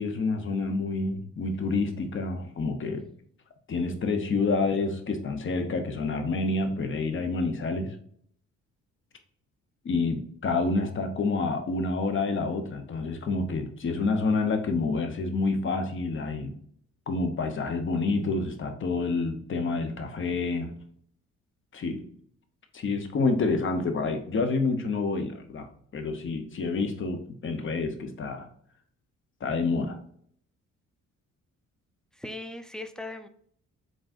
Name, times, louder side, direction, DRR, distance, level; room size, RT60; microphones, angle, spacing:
voice 1, 0.0-3.1 3.7-8.0 9.8-16.5 17.1-20.7 21.7-22.1 22.7-25.7 25.9-28.5 29.4-30.0, left 3 dB, 40° left, 6 dB, 0.8 m, -28 dB
voice 2, 32.1-33.3, left 2 dB, ahead, 8 dB, 0.4 m, -38 dB
3.8 x 3.6 x 2.5 m, 0.62 s
cardioid pair, 90°, 30 cm